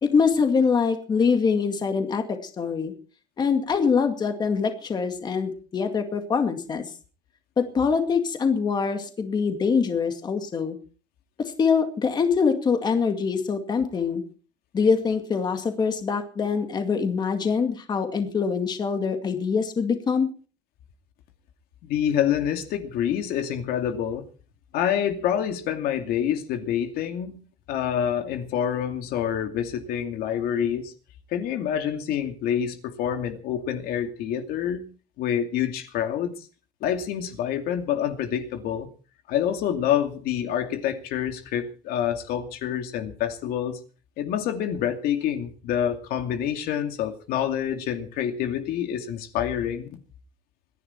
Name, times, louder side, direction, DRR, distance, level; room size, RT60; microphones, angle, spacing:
voice 1, 0.0-2.9 3.4-6.8 7.6-10.8 11.4-14.2 14.7-20.3, left 5 dB, 25° left, 2.2 m, -24 dB
voice 2, 21.8-24.2 24.7-27.4 27.7-30.9 31.3-34.8 35.2-36.4 36.8-38.9 39.3-43.8 44.2-49.9, left 9 dB, 60° left, 2.5 m, -27 dB
26.5 x 11.0 x 4.4 m
cardioid pair, 160°, 17 cm